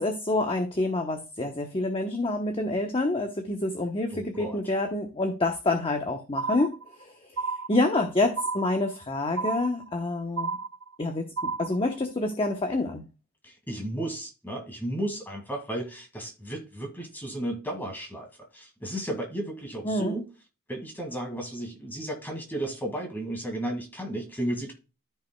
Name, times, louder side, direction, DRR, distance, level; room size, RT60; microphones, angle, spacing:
voice 1, 0.0-7.1 7.7-10.6 11.0-13.0 19.8-20.2, left 2 dB, 25° left, 0.9 m, -27 dB
voice 2, 4.1-4.6 13.4-20.3 20.7-24.7, right 1 dB, 10° left, 1.9 m, -34 dB
sound 1, 6.4-7.0 7.4-8.0 8.4-9.0 9.4-10.0 10.4-11.0 11.4-12.0, right 4 dB, 60° right, 0.6 m, -32 dB
13.5 x 5.3 x 2.2 m
head